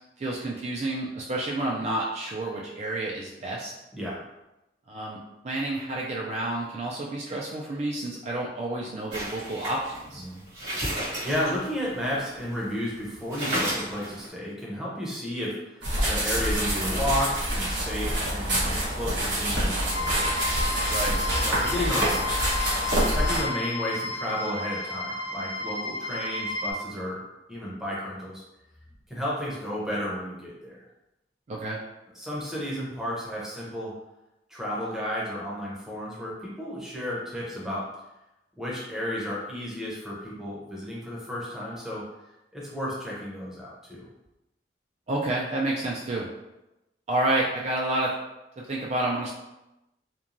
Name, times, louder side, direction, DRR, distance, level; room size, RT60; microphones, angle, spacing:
voice 1, 0.2-3.7 4.9-5.2 5.4-10.2 20.9-21.2 31.5-31.8 45.1-46.3 47.1-48.1 48.7-49.4, right 1 dB, 40° right, -3 dB, 0.3 m, -29 dB
sound 1, 9.1-12.6 13.0-13.1 13.3-14.3, right 1 dB, 70° right, 1.4 m, -32 dB
voice 2, 10.8-20.2 21.4-22.3 23.1-27.2 27.5-28.4 29.1-30.8 32.1-33.9 34.5-37.9 38.6-42.1 42.5-44.1, equal, 5° right, -6 dB, 0.6 m, -32 dB
sound 2, 15.8-23.4, right 1 dB, 90° right, 1.1 m, -26 dB
sound 3, 19.9-26.7, left 3 dB, 80° left, 0.4 m, -32 dB
2.9 x 2.2 x 2.5 m, 0.95 s
head